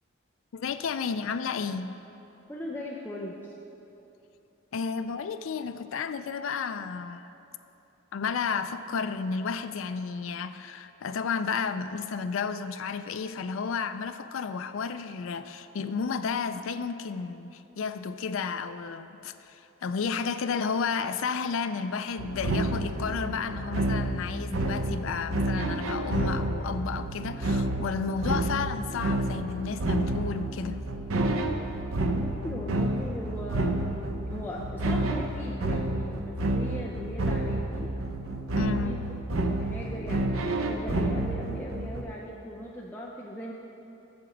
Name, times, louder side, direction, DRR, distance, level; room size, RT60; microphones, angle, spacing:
voice 1, 0.5-1.9 4.7-7.2 8.1-30.8 38.6-39.0, left 5 dB, 70° left, 10 dB, 0.4 m, -32 dB
voice 2, 2.5-3.4 32.1-33.8 34.3-37.9 38.8-39.0 39.4-43.5, equal, 10° left, -4 dB, 0.6 m, -38 dB
sound 1, 22.2-42.0, right 1 dB, 80° right, 0.8 m, -29 dB
8.7 x 6.8 x 7.2 m, 3.0 s
head